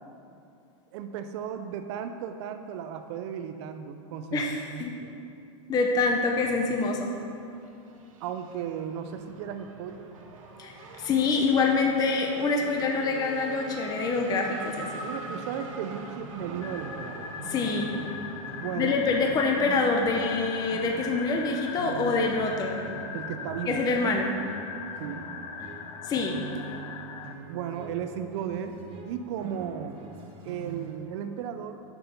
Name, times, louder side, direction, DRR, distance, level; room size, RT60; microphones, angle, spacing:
voice 1, 0.9-5.1 8.2-10.1 15.0-17.3 18.6-19.0 23.1-23.8 25.0-25.3 27.5-28.8 29.0-30.0 30.4-31.8, right 8 dB, 55° right, 8 dB, 0.6 m, -35 dB
voice 2, 4.3-4.9 5.7-7.1 10.6-10.7 11.0-14.9 17.5-17.9 18.8-22.7 23.7-24.3 26.0-26.4, left 4 dB, 25° left, 2 dB, 0.7 m, -26 dB
Race car auto racing / Accelerating revving vroom, 7.0-23.9, right 3 dB, 85° right, 1.4 m, -45 dB
sound 1, 16.4-31.0, right 5 dB, 35° right, 1.2 m, -44 dB
sound 2, 16.6-27.3, left 7 dB, 70° left, 0.7 m, -40 dB
6.6 x 6.1 x 7.0 m, 2.6 s
supercardioid pair, 140°, 17 cm